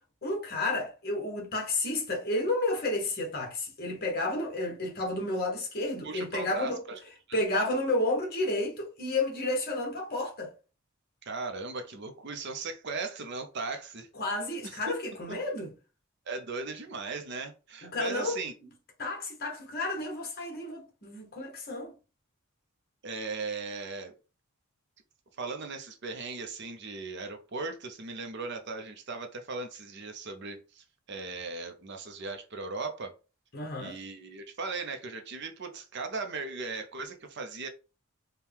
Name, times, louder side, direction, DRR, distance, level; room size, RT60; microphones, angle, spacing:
voice 1, 0.2-6.8 7.3-10.5 14.1-15.7 17.8-18.4 19.0-21.9 33.5-34.0, left 2 dB, 45° left, 1.3 m, -31 dB
voice 2, 6.0-7.0 7.3-7.4 11.2-14.1 14.6-14.9 16.3-18.5 23.0-24.1 25.4-33.1 33.8-37.7, right 4 dB, 55° right, 0.7 m, -38 dB
4.5 x 2.3 x 3.5 m
head